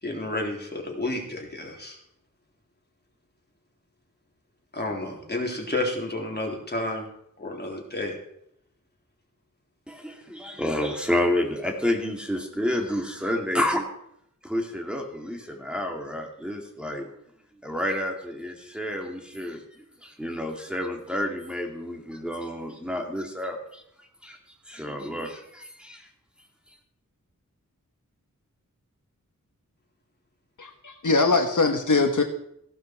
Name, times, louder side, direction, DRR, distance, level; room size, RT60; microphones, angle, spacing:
voice 1, 0.0-2.0 4.7-7.1 7.4-8.1, left 2 dB, 30° left, -1 dB, 3.6 m, -31 dB
voice 2, 9.9-13.9 14.4-17.1 17.6-19.6 20.0-23.8 24.2-24.4 24.7-26.1, left 1 dB, 5° right, 1 dB, 2.4 m, -29 dB
voice 3, 30.6-32.2, left 3 dB, 65° left, 5 dB, 1.3 m, -22 dB
16.0 x 11.5 x 4.6 m, 0.75 s
wide cardioid pair, 80°, 33 cm